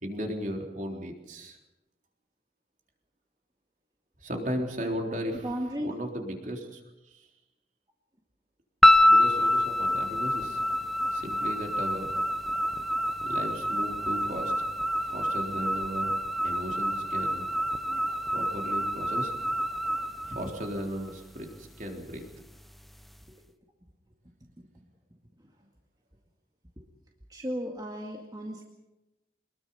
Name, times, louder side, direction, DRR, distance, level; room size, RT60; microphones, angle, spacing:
voice 1, 0.0-1.6 4.2-5.5 5.8-7.3 9.1-10.6 11.1-12.1 13.2-14.5 15.0-16.1 16.4-17.5 18.3-19.3 20.2-22.2, equal, 45° right, 2 dB, 3.8 m, -36 dB
voice 2, 5.4-5.9 17.8-18.0 23.3-23.4 26.8-26.9 27.3-28.6, equal, 20° right, 1 dB, 2.1 m, -35 dB
sound 1, 8.8-21.1, left 1 dB, ahead, 0.8 m, -26 dB
24.0 x 21.0 x 5.6 m, 1.0 s
head